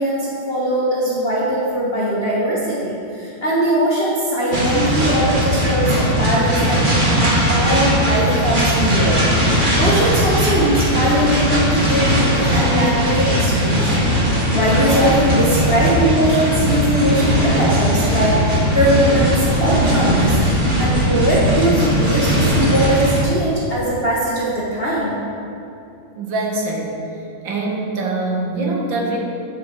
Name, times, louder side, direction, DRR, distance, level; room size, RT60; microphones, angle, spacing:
voice 1, 0.0-9.2 9.8-20.4 20.8-25.2, right 1 dB, 35° left, -6 dB, 1.5 m, -20 dB
sound 1, 4.5-23.2, equal, 25° right, 2.0 m, -18 dB
voice 2, 26.2-26.9 27.4-29.2, right 2 dB, 80° right, -1 dB, 2.2 m, -23 dB
14.0 x 6.9 x 4.6 m, 2.7 s
omnidirectional pair, 2.0 m